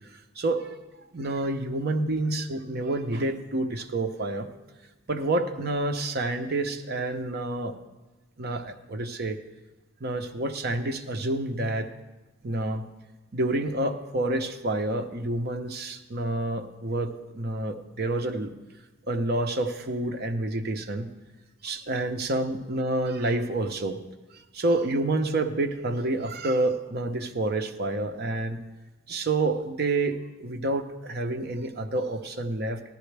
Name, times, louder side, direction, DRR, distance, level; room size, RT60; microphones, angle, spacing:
voice 1, 0.1-4.5 5.1-7.8 8.4-9.4 10.0-11.9 12.4-12.9 13.3-18.5 19.1-21.1 21.6-24.0 24.3-28.6 29.1-32.8, right 2 dB, 45° right, 6 dB, 0.7 m, -28 dB
15.0 x 11.5 x 3.3 m, 1.1 s
head